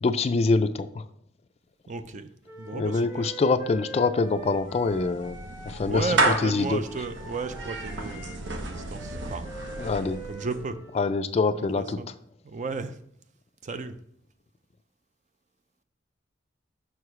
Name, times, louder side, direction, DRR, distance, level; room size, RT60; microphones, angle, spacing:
voice 1, 0.0-1.0 2.7-6.2 6.4-6.8 9.8-10.2 11.0-12.0, left 3 dB, 35° left, 11 dB, 0.3 m, -25 dB
voice 2, 1.9-2.3 2.6-3.3 5.9-9.5 10.3-10.8 11.5-12.1 12.4-13.0 13.6-14.0, right 3 dB, 40° right, 10 dB, 0.4 m, -34 dB
Wind instrument woodwind instrument, 2.4-11.0, right 2 dB, 10° right, 1.1 m, -44 dB
Clapping / Meow, 4.3-10.7, right 2 dB, 65° right, 0.8 m, -32 dB
6.2 x 4.8 x 4.8 m, 0.70 s
head